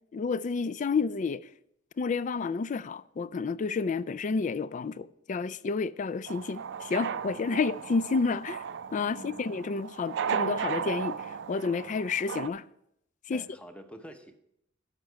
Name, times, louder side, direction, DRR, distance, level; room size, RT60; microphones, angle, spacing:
voice 1, 0.1-1.5 2.0-8.6 8.9-12.6 13.3-13.4, left 4 dB, 40° left, 0.3 m, -30 dB
sound 1, 6.3-12.5, right 7 dB, 70° right, 0.4 m, -35 dB
voice 2, 7.3-7.7 9.1-9.5 13.3-14.4, equal, 5° left, 0.8 m, -48 dB
11.5 x 6.4 x 4.6 m
head